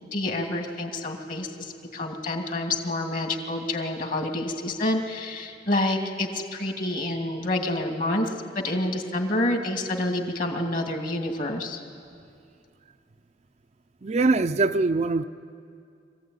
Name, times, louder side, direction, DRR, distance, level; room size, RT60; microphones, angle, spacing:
voice 1, 0.1-8.3 8.5-11.8, left 1 dB, 50° left, 3 dB, 2.4 m, -28 dB
voice 2, 14.0-15.2, right 3 dB, 40° right, 9 dB, 0.5 m, -22 dB
24.5 x 16.0 x 9.4 m, 2.4 s
head